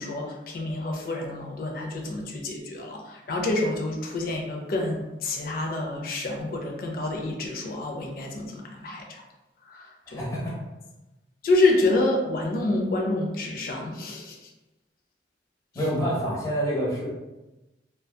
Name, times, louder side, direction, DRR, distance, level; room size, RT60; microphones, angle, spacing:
voice 1, 0.0-9.2 9.6-10.2 11.4-14.5 15.7-15.9, left 2 dB, 55° left, 1 dB, 0.4 m, -28 dB
voice 2, 10.1-10.6 15.7-17.1, equal, 20° left, -6 dB, 0.7 m, -27 dB
2.6 x 2.2 x 2.2 m, 1.0 s
head